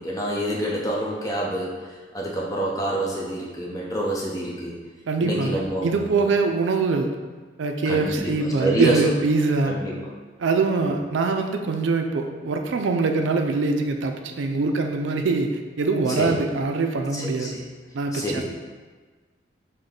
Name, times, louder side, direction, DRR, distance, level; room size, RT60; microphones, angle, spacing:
voice 1, 0.0-4.7 5.2-6.1 7.8-9.1 9.6-10.1 16.1-16.5 17.1-17.6 18.1-18.4, right 1 dB, 20° left, -4 dB, 0.7 m, -27 dB
voice 2, 5.1-7.2 7.6-9.8 10.4-17.6 17.9-18.4, right 3 dB, 75° right, 4 dB, 0.4 m, -23 dB
6.4 x 2.1 x 3.8 m, 1.4 s
head